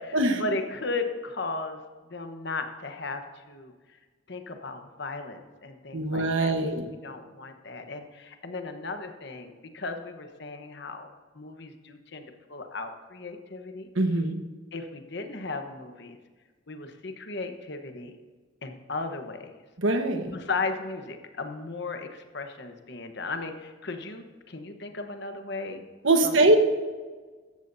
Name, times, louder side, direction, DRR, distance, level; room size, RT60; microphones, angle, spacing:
voice 1, 0.0-1.8 2.1-3.7 4.3-11.1 11.3-12.2 12.5-13.9 14.7-16.2 16.7-18.1 18.6-19.6 20.2-25.8 26.2-26.6, left 3 dB, 60° left, 6 dB, 1.2 m, -36 dB
voice 2, 5.9-6.8 13.9-14.4 19.8-20.4 26.0-26.6, right 2 dB, 75° right, 6 dB, 1.3 m, -22 dB
16.5 x 13.5 x 2.7 m, 1.4 s
head